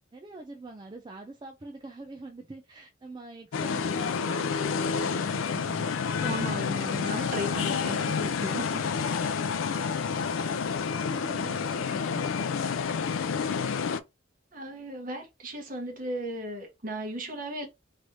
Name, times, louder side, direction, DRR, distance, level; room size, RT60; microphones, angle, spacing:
voice 1, 0.1-5.9 10.9-12.4, right 2 dB, 20° right, 0.4 m, -44 dB
sound 1, 3.5-14.0, left 6 dB, 85° left, 0.4 m, -29 dB
voice 2, 6.2-8.8 9.2-9.3 14.5-17.7, equal, 45° right, 1.1 m, -35 dB
3.1 x 2.6 x 3.1 m
head